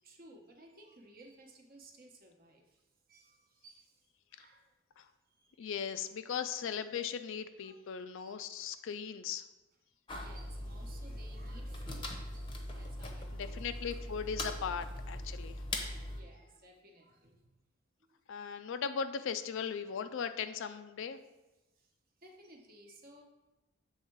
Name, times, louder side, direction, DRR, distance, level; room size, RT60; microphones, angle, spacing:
voice 1, 0.0-4.7 5.0-5.6 7.6-7.8 8.2-8.5 9.9-13.6 15.7-17.4 18.1-18.2 18.5-18.6 21.7-21.9 22.2-23.2, right 1 dB, 45° right, 2 dB, 0.9 m, -58 dB
voice 2, 5.6-9.4 13.3-15.6 18.3-21.2, left 7 dB, 60° left, 10 dB, 0.4 m, -38 dB
sound 1, 10.1-16.2, left 1 dB, 20° left, 0.7 m, -41 dB
7.3 x 3.6 x 4.5 m, 1.1 s
head